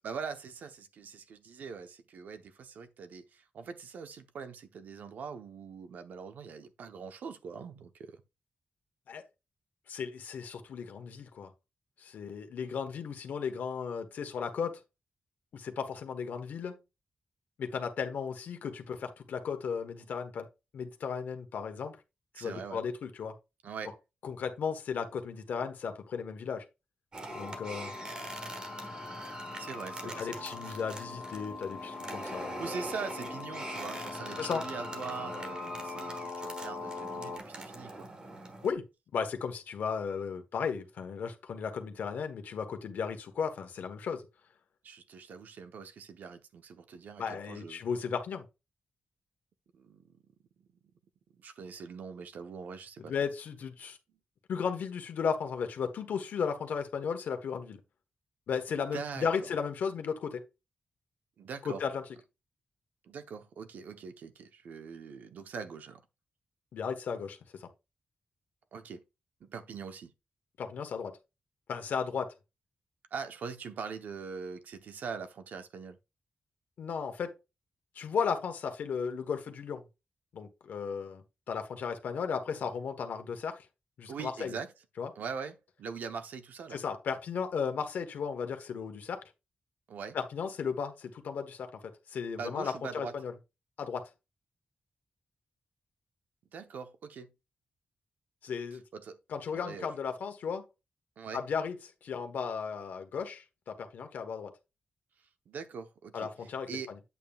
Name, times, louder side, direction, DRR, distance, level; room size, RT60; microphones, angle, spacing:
voice 1, 0.0-8.2 22.4-22.8 23.6-24.0 29.6-30.7 32.2-38.1 44.8-47.8 49.7-50.2 50.6-50.7 51.3-53.1 58.9-59.5 61.4-61.8 63.0-66.0 68.7-69.0 69.4-70.1 73.1-76.0 84.1-84.7 85.1-86.8 89.9-90.2 92.3-93.1 96.5-97.3 98.7-99.2 99.5-99.9 101.2-101.4 105.5-106.9, right 5 dB, 80° right, 0.9 m, -42 dB
voice 2, 9.9-11.5 12.0-14.8 15.5-16.7 17.6-20.5 20.7-22.0 22.4-23.3 24.2-26.6 27.3-27.9 30.2-32.6 34.4-34.6 38.6-38.8 39.1-44.2 47.2-48.4 53.1-54.0 54.5-57.8 58.5-60.4 61.6-62.0 66.7-67.7 70.6-71.1 71.7-72.3 76.8-77.3 77.9-79.8 80.3-83.7 84.0-84.6 85.0-85.1 86.7-89.2 90.1-91.8 92.1-93.3 93.8-94.0 98.4-98.8 99.3-100.6 101.3-101.8 102.0-104.5 106.1-106.7, left 6 dB, 85° left, 1.2 m, -35 dB
sound 1, 27.1-38.7, right 2 dB, 30° right, 1.3 m, -43 dB
sound 2, 27.3-37.4, left 4 dB, 40° left, 0.6 m, -42 dB
8.3 x 7.1 x 2.3 m
wide cardioid pair, 175°, 3 cm